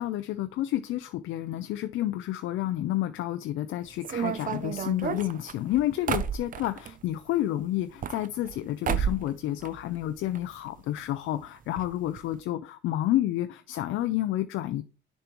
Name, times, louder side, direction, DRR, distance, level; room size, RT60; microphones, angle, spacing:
voice 1, 0.0-14.8, left 13 dB, 80° left, 0.4 m, -30 dB
sound 1, 4.0-6.9 7.8-8.6 8.8-9.3 9.6-10.4 10.7-10.8 11.0-11.1 11.8-11.9 12.2-12.3, right 8 dB, 45° right, 0.5 m, -31 dB
6.9 x 5.3 x 3.0 m
cardioid pair, 90°, 20 cm